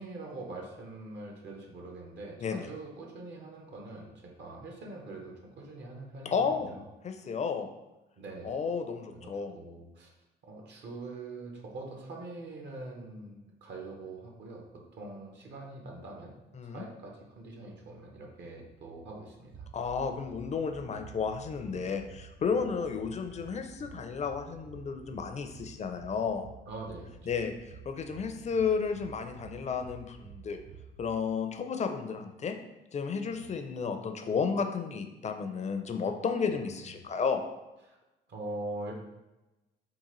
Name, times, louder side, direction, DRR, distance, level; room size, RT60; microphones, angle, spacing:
voice 1, 0.0-6.8 8.2-8.6 9.1-10.1 10.5-16.4 16.6-19.7 26.7-27.2 33.3-33.5 36.5-36.9 37.9-38.0 38.3-38.9, right 2 dB, 65° right, 0 dB, 0.8 m, -43 dB
voice 2, 6.2-7.7 8.4-9.6 16.6-16.8 19.7-26.5 27.3-27.5 27.9-30.6 31.0-32.6 32.9-37.4, left 5 dB, 35° left, 6 dB, 0.4 m, -32 dB
sound 1, 18.7-31.1, right 5 dB, 40° right, 0.4 m, -51 dB
3.7 x 2.4 x 3.0 m, 1.0 s
cardioid pair, 90°, 20 cm